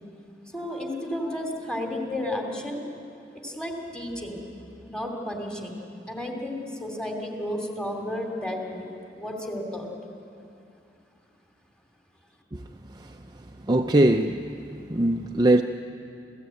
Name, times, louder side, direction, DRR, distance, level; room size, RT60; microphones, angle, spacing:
voice 1, 0.5-2.8 3.4-4.4 4.8-5.7 6.1-8.9 9.1-9.9, left 1 dB, 5° left, 2 dB, 2.9 m, -32 dB
voice 2, 13.7-14.4 14.9-15.6, right 1 dB, 20° right, 4 dB, 0.6 m, -20 dB
28.0 x 15.5 x 9.2 m, 2.6 s
head